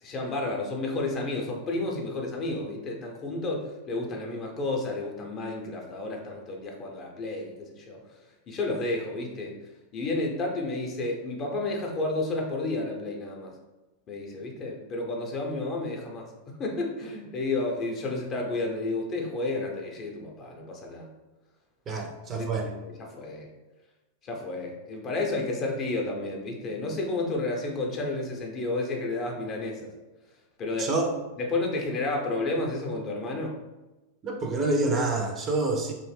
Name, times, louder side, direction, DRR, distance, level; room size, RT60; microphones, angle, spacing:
voice 1, 0.0-8.2 8.5-9.5 9.9-13.5 14.1-16.3 16.6-21.1 21.9-23.5 24.2-29.9 30.6-30.9 31.4-33.6, left 2 dB, 30° left, 1 dB, 0.6 m, -31 dB
voice 2, 21.9-22.7 30.8-31.1 34.2-35.9, right 3 dB, 25° right, 2 dB, 0.4 m, -27 dB
2.5 x 2.0 x 3.2 m, 1.1 s
figure-of-eight pair, 90°, 0 cm